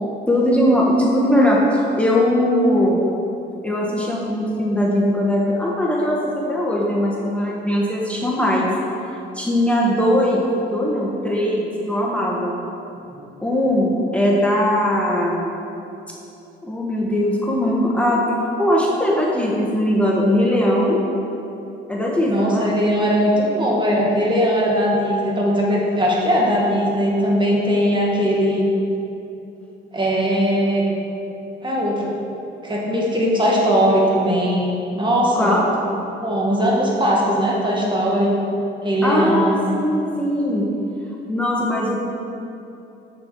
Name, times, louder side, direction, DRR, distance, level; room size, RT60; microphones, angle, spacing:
voice 1, 0.3-3.0 3.6-8.7 9.3-12.6 13.4-15.5 16.6-18.3 18.6-21.0 21.9-22.8 35.3-35.6 39.0-40.7 41.3-42.0, left 1 dB, 5° left, -4 dB, 1.3 m, -20 dB
voice 2, 22.3-28.7 29.9-30.8 31.6-32.1 32.6-35.6 36.2-38.4 38.8-39.6, equal, 25° right, -4 dB, 2.1 m, -19 dB
7.4 x 7.2 x 4.6 m, 2.9 s
cardioid pair, 90°, 20 cm